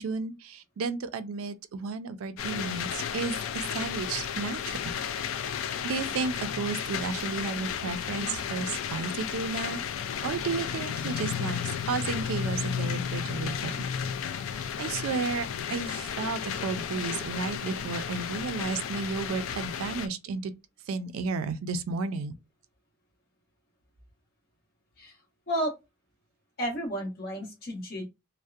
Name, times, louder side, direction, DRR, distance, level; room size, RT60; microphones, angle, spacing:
voice 1, 0.0-4.9 5.4-5.6 5.8-9.8 10.2-11.6 11.9-13.9 14.8-20.5 20.9-22.3, right 4 dB, 80° right, 0.3 m, -33 dB
sound 1, 2.4-20.1, left 8 dB, 70° left, 0.3 m, -33 dB
voice 2, 26.6-28.0, equal, 45° left, 0.8 m, -32 dB
2.6 x 2.0 x 2.3 m
head